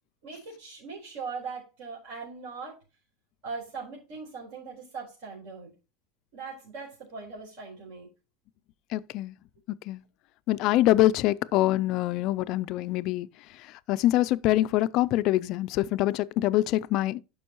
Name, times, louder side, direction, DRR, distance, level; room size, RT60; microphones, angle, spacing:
voice 1, 0.2-2.8 3.4-5.7 6.3-8.1, right 4 dB, 55° right, 4.2 m, -40 dB
voice 2, 8.9-9.3 9.7-10.0 10.5-13.3 13.9-17.2, left 15 dB, 40° left, 0.3 m, -24 dB
11.5 x 5.4 x 3.0 m
supercardioid pair, 175°, 0 cm